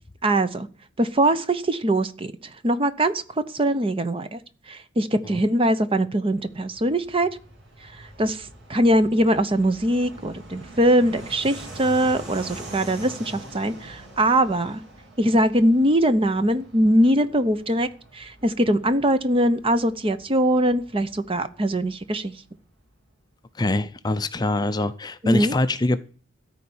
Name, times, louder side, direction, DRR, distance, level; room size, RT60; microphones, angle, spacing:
voice 1, 0.2-0.7 1.0-3.2 3.5-4.4 4.7-7.3 7.8-14.8 15.2-22.4 25.2-25.6, right 1 dB, 25° right, 12 dB, 0.7 m, -22 dB
Fixed-wing aircraft airplane, 6.3-22.5, right 1 dB, 55° right, 3.7 m, -44 dB
voice 2, 23.6-26.0, left 2 dB, 20° left, 11 dB, 0.5 m, -24 dB
13.5 x 4.6 x 8.6 m, 0.41 s
head